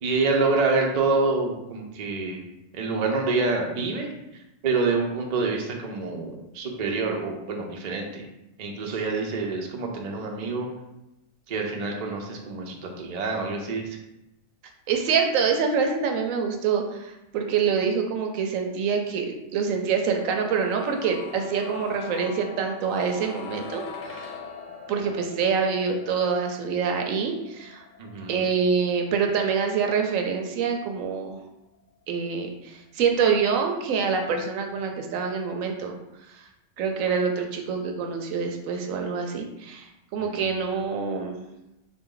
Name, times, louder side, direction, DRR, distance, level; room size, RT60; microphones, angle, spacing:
voice 1, 0.0-2.4 2.7-4.1 4.6-8.2 8.6-10.7 11.5-14.0 28.0-28.4 40.2-40.5, right 3 dB, 55° right, 1 dB, 0.4 m, -27 dB
voice 2, 14.9-24.3 24.9-27.8 28.3-31.4 32.1-36.0 36.3-36.5 36.8-41.4, right 6 dB, 80° right, 4 dB, 1.0 m, -26 dB
sound 1, 20.1-32.0 32.2-32.3, left 5 dB, 70° left, 0.9 m, -43 dB
3.6 x 2.6 x 3.7 m, 0.90 s
omnidirectional pair, 1.4 m